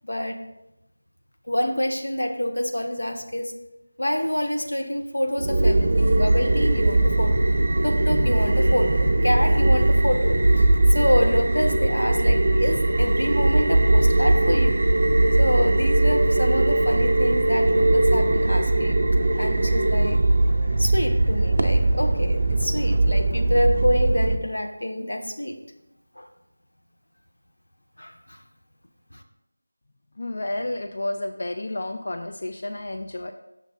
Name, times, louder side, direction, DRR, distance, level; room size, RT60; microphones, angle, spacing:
voice 1, 0.0-0.5 1.5-3.5 4.0-7.5 7.8-14.8 15.4-19.0 19.4-20.2 20.8-25.6 26.2-26.3 28.0-28.4 29.1-29.2, left 1 dB, 85° left, 5 dB, 0.9 m, -27 dB
sound 1, 5.4-24.3, right 2 dB, 45° right, 0.4 m, -20 dB
voice 2, 30.2-33.3, left 1 dB, 45° left, 6 dB, 0.3 m, -31 dB
6.3 x 3.6 x 5.2 m, 0.92 s
figure-of-eight pair, 175°, 0 cm